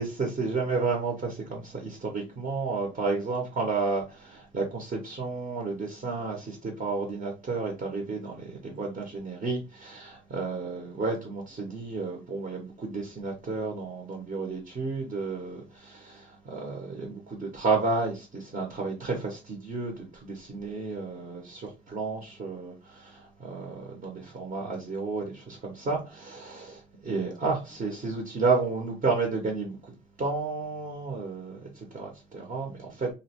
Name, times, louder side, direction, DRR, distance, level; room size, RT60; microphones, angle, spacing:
voice 1, 0.0-29.8 30.2-33.1, right 4 dB, 40° right, 0.8 m, -32 dB
2.6 x 2.0 x 2.8 m
cardioid pair, 90°, 20 cm